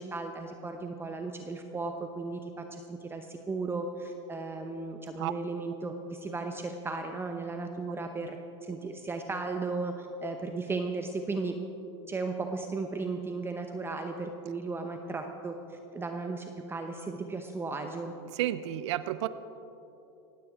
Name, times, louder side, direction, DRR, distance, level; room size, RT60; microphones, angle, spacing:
voice 1, 0.0-8.4 8.6-11.6 12.1-18.1, right 3 dB, 15° right, 5 dB, 0.9 m, -35 dB
voice 2, 18.3-19.3, right 14 dB, 75° right, 14 dB, 0.6 m, -31 dB
19.5 x 15.5 x 3.6 m, 3.0 s
hypercardioid pair, 110°, 15 cm